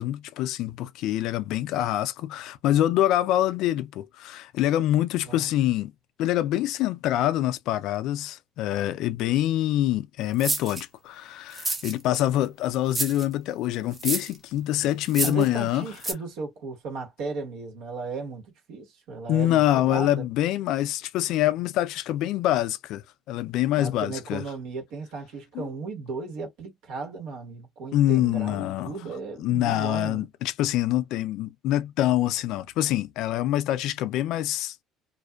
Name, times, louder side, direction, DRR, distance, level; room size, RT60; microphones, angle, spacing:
voice 1, 0.0-5.9 6.2-15.9 19.3-24.4 25.5-25.7 27.9-28.9 29.4-34.8, left 13 dB, 65° left, 0.3 m, -25 dB
sound 1, 10.4-10.8 11.5-12.2 12.9-13.2 13.9-14.4 15.1-15.5 16.0-16.1, right 3 dB, 20° right, 0.8 m, -28 dB
voice 2, 15.2-20.2 23.8-30.3, right 4 dB, 70° right, 1.3 m, -35 dB
2.5 x 2.2 x 2.3 m
cardioid pair, 155°, 0 cm